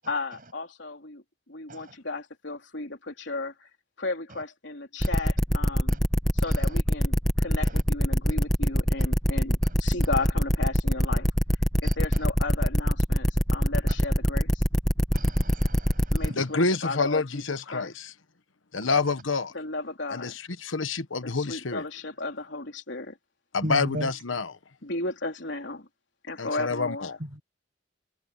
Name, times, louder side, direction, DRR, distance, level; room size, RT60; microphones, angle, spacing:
voice 1, 0.1-3.7 4.0-6.0 6.3-11.3 11.8-14.6 16.1-17.4 17.7-17.9 19.5-20.4 21.2-23.2 24.8-25.9 26.2-27.1, left 3 dB, 65° left, 3.6 m, -34 dB
sound 1, 5.0-16.3, equal, 5° left, 1.1 m, -23 dB
voice 2, 6.5-6.8 7.6-7.8 9.6-9.7 11.8-12.2 15.1-16.4 23.6-24.1 27.2-27.4, equal, 45° right, 7.9 m, -37 dB
voice 3, 16.3-18.1 18.7-19.5 20.1-21.8 23.5-24.5 26.4-27.1, left 4 dB, 85° left, 1.2 m, -28 dB
head